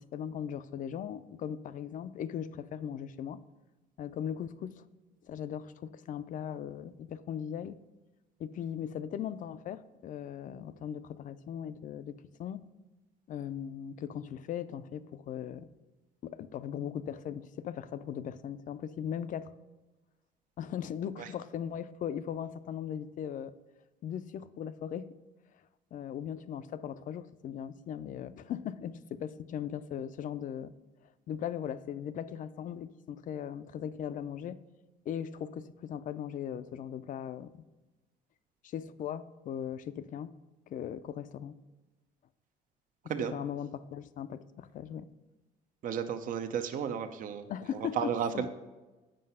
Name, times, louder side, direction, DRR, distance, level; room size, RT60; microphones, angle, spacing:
voice 1, 0.0-3.4 4.0-4.9 5.3-7.8 8.4-12.6 13.3-15.7 16.2-19.5 20.6-23.5 24.0-25.1 25.9-30.7 31.3-34.6 35.1-37.6 38.6-40.3 40.7-41.6 43.3-45.1 47.5-48.5, left 9 dB, 50° left, 14 dB, 0.4 m, -38 dB
voice 2, 45.8-48.5, right 7 dB, 50° right, 8 dB, 0.6 m, -33 dB
7.6 x 5.6 x 5.5 m, 1.2 s
cardioid pair, 110°, 17 cm